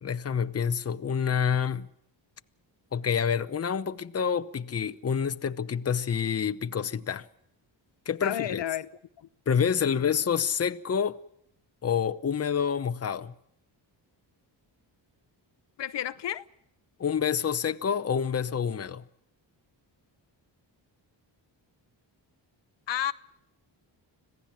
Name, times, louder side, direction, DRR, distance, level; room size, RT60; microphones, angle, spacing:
voice 1, 0.0-1.9 2.9-7.3 8.1-8.6 9.5-11.2 11.8-13.3 17.0-19.0, left 7 dB, 35° left, 0.9 m, -28 dB
voice 2, 8.2-8.9 9.2-9.3 9.8-10.1 15.8-16.4 22.9-23.1, left 11 dB, 65° left, 0.9 m, -32 dB
26.0 x 16.5 x 7.3 m
cardioid pair, 105°, 45 cm